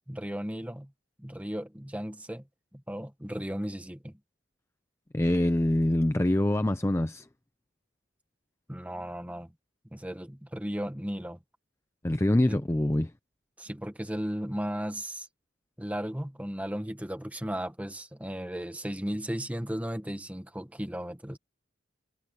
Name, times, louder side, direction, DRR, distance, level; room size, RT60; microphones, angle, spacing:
voice 1, 0.1-0.9 1.2-2.4 2.7-4.1 8.7-9.5 9.9-11.4 12.5-12.6 13.6-15.3 15.8-21.4, equal, 10° right, 1.4 m, -35 dB
voice 2, 5.1-7.3 12.0-13.1, left 1 dB, 15° left, 0.5 m, -25 dB
head